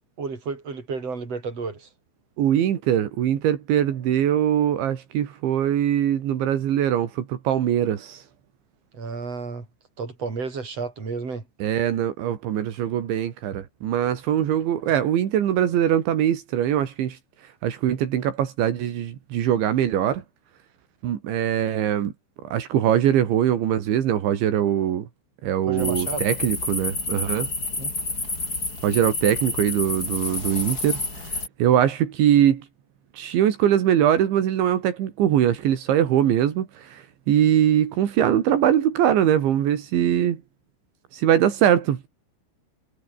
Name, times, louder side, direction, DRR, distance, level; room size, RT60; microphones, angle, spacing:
voice 1, 0.2-1.9 8.9-9.7 10.0-11.4 25.7-26.2 27.8-27.9, right 4 dB, 35° right, 6.6 m, -31 dB
voice 2, 2.4-8.2 11.6-17.2 17.6-20.2 21.0-22.1 22.4-25.1 25.4-27.5 28.8-31.0 31.6-32.7 33.1-40.4 41.1-42.1, right 10 dB, 80° right, 4.7 m, -22 dB
sound 1, 25.8-31.5, left 2 dB, 20° left, 6.1 m, -29 dB
omnidirectional pair, 5.3 m